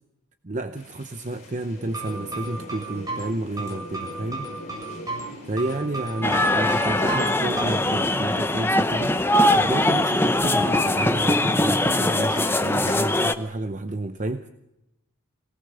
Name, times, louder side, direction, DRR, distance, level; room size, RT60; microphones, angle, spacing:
voice 1, 0.4-4.5 5.5-9.2 9.5-14.5, right 2 dB, 35° right, 9 dB, 0.7 m, -31 dB
sound 1, 0.7-13.1, left 1 dB, 35° left, 5.0 m, -45 dB
sound 2, 1.8-7.6, right 2 dB, 15° right, 8.0 m, -34 dB
sound 3, 6.2-13.4, left 1 dB, 10° left, 0.8 m, -21 dB
23.5 x 18.0 x 6.9 m, 0.88 s
head